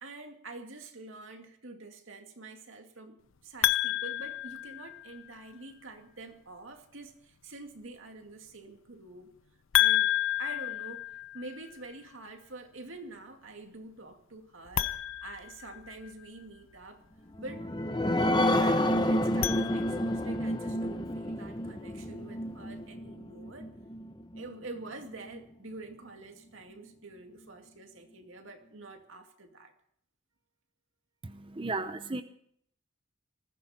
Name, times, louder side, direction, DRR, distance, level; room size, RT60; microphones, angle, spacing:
voice 1, 0.0-9.3 9.7-17.0 17.4-17.7 18.0-23.7 24.4-29.7, right 2 dB, 80° right, 4 dB, 2.3 m, -46 dB
sound 1, 3.6-5.3 9.7-11.8 14.7-16.3 19.2-20.4, left 13 dB, 85° left, 0.7 m, -30 dB
sound 2, 17.3-24.4 24.9-25.0 25.3-25.4, left 1 dB, 20° left, 0.9 m, -29 dB
voice 2, 31.2-32.2, right 3 dB, 25° right, 9 dB, 0.6 m, -35 dB
20.5 x 15.0 x 4.4 m, 0.68 s
head